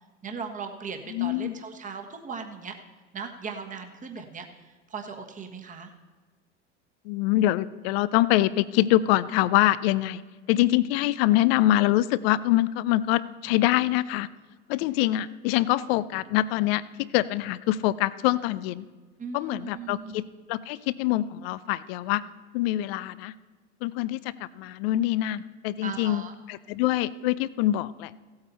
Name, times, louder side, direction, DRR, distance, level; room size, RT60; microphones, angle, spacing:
voice 1, 0.2-2.7 3.1-4.4 4.9-5.9 19.2-20.2 25.8-26.3, right 5 dB, 20° right, 5 dB, 1.4 m, -38 dB
voice 2, 1.1-1.5 7.0-10.2 10.5-14.3 14.7-18.8 19.3-20.2 20.5-22.2 22.5-23.3 23.8-28.1, left 15 dB, 55° left, 17 dB, 0.6 m, -24 dB
16.0 x 8.7 x 4.2 m, 1.4 s
hypercardioid pair, 85°, 36 cm